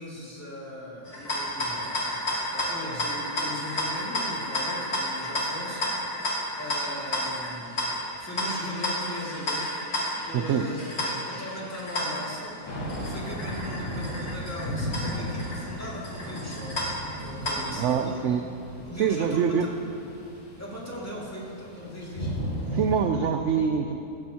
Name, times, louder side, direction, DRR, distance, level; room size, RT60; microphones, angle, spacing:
voice 1, 0.0-6.0 6.6-12.6 13.0-16.9 17.2-18.3 18.8-19.7 20.6-22.4, left 1 dB, 10° left, -6 dB, 2.3 m, -39 dB
sound 1, 1.0-17.9, left 1 dB, 70° left, 2.8 m, -32 dB
voice 2, 10.3-10.7 17.8-18.4 19.0-19.7 22.7-24.1, right 7 dB, 65° right, 6 dB, 0.7 m, -25 dB
Thunder / Rain, 12.7-23.0, equal, 40° left, 2.9 m, -36 dB
15.5 x 13.5 x 2.9 m, 2.7 s
omnidirectional pair, 1.7 m